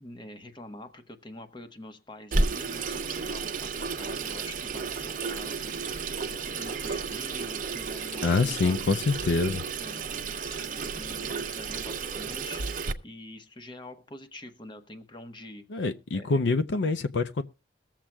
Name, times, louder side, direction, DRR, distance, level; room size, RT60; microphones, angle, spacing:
voice 1, 0.0-8.9 9.8-16.4, left 1 dB, 25° left, 1.0 m, -46 dB
Water tap faucet / Sink (filling or washing), 2.3-12.9, right 4 dB, 50° right, 0.7 m, -32 dB
voice 2, 8.2-9.6 15.7-17.4, left 3 dB, 90° left, 0.6 m, -25 dB
22.0 x 7.4 x 2.2 m
head